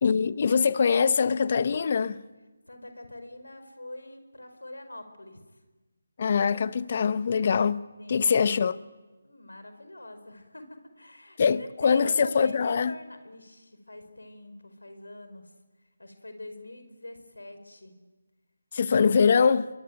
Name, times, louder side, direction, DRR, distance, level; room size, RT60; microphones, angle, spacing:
voice 1, 0.0-2.2 6.2-7.8 8.1-8.8 11.4-12.9 18.7-19.7, left 6 dB, 40° left, 0.9 m, -23 dB
voice 2, 2.7-5.6 8.0-8.3 9.2-15.5 16.0-17.9, left 1 dB, 90° left, 4.8 m, -44 dB
26.0 x 22.5 x 9.3 m
figure-of-eight pair, 160°, 0 cm